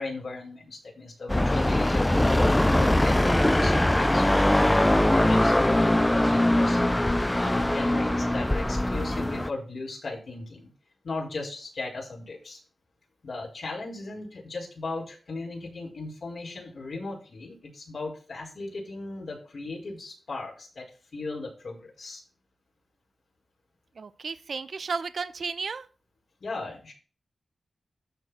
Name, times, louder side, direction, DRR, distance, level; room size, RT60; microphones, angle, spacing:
voice 1, 0.0-4.8 5.1-10.7 11.0-12.6 13.2-22.2 26.4-26.9, left 3 dB, 65° left, -2 dB, 5.0 m, -37 dB
sound 1, 1.3-9.5, left 1 dB, 10° left, 0.3 m, -22 dB
voice 2, 24.0-25.9, right 5 dB, 65° right, 14 dB, 0.6 m, -33 dB
13.5 x 4.6 x 4.2 m, 0.37 s
wide cardioid pair, 110°, 0 cm